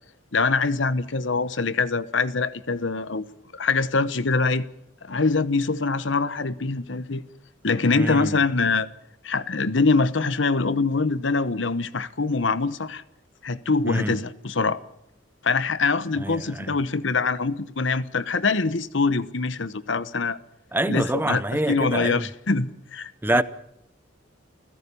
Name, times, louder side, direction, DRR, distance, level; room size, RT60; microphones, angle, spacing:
voice 1, 0.3-3.2 3.5-4.6 5.0-7.2 7.6-8.9 9.2-13.0 13.4-14.8 15.4-20.4 20.9-23.4, left 4 dB, 75° left, 1.1 m, -24 dB
voice 2, 7.9-8.3 13.8-14.1 16.2-16.7 20.7-22.2 23.2-23.4, right 1 dB, 10° right, 0.7 m, -25 dB
29.0 x 16.0 x 7.0 m
head